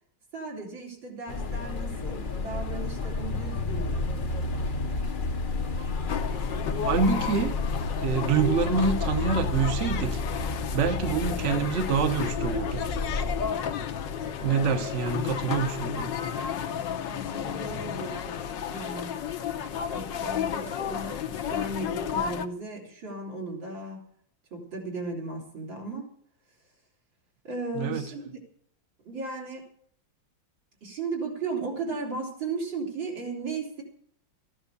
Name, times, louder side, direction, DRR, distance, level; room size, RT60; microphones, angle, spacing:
voice 1, 0.3-4.1 14.4-14.8 17.0-18.4 18.7-19.1 19.8-24.0 24.5-26.1 27.4-28.3 29.0-29.7 30.8-33.8, right 3 dB, 85° right, -1 dB, 4.4 m, -36 dB
sound 1, 1.3-13.5, left 3 dB, 40° left, 0.7 m, -31 dB
sound 2, 6.1-22.5, left 8 dB, 75° left, 1.6 m, -32 dB
voice 2, 6.8-7.6 8.0-10.2 10.7-12.8 14.4-16.1 27.7-28.0, right 5 dB, 45° right, 8 dB, 1.2 m, -26 dB
14.5 x 10.5 x 6.9 m, 0.64 s
omnidirectional pair, 2.0 m